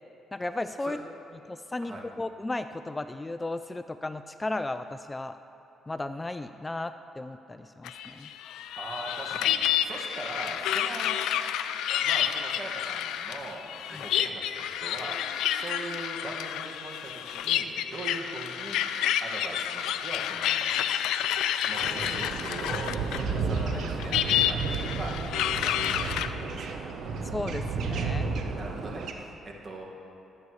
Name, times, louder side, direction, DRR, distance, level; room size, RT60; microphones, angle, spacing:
voice 1, 0.3-1.0 1.5-5.4 5.9-8.3 13.9-14.0 27.3-28.3, left 2 dB, 20° left, 10 dB, 0.3 m, -35 dB
sound 1, 7.8-23.3 23.6-26.3, left 10 dB, 90° left, 0.4 m, -29 dB
voice 2, 8.8-11.2 12.0-18.8 19.2-20.7 21.6-25.2 25.5-26.9 28.5-29.8, right 2 dB, 45° right, -1 dB, 1.8 m, -41 dB
sound 2, 21.8-29.1, right 4 dB, 70° right, 0.9 m, -32 dB
20.0 x 8.2 x 3.2 m, 3.0 s
cardioid pair, 95°, 0 cm